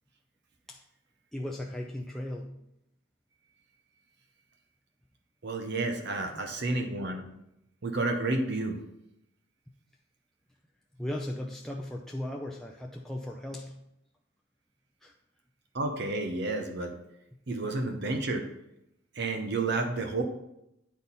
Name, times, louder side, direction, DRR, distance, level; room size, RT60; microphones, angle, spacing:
voice 1, 1.3-2.6 6.2-6.4 11.0-13.8 15.0-15.1, left 1 dB, ahead, 0 dB, 0.4 m, -37 dB
voice 2, 5.4-7.2 7.8-8.8 15.7-16.9 17.5-18.5 19.1-20.2, right 2 dB, 55° right, 5 dB, 0.8 m, -30 dB
10.0 x 4.1 x 4.1 m, 0.82 s
head